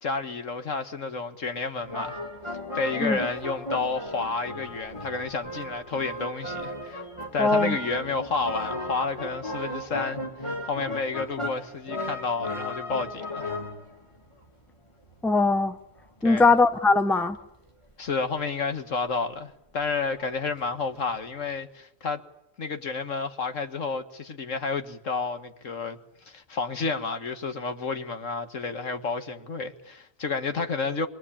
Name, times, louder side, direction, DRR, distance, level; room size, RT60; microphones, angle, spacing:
voice 1, 0.0-2.2 2.7-7.0 7.3-13.5 16.2-16.5 18.0-22.2 22.6-26.0 26.3-31.1, left 4 dB, 70° left, 2.1 m, -30 dB
sound 1, 1.8-16.9 17.9-18.0 19.9-20.0 20.2-20.3 20.6-20.7 21.5-21.6, left 1 dB, 25° left, 3.4 m, -36 dB
voice 2, 7.4-7.8 15.2-15.8 16.2-17.4, left 3 dB, ahead, 0.9 m, -20 dB
27.0 x 22.5 x 8.7 m
omnidirectional pair, 1.3 m